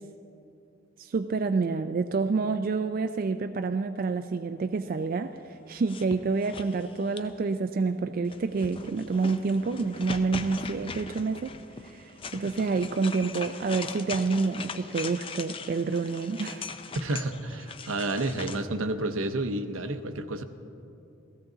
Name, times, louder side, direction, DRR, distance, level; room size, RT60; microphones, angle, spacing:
voice 1, 1.0-5.4 5.7-11.5 11.8-16.7, right 4 dB, 45° right, 8 dB, 0.3 m, -28 dB
sound 1, 5.7-7.5 8.2-18.6, left 4 dB, 25° left, 0.4 m, -40 dB
voice 2, 16.9-20.4, right 2 dB, 80° right, 9 dB, 0.8 m, -30 dB
16.0 x 15.0 x 3.9 m, 2.7 s
head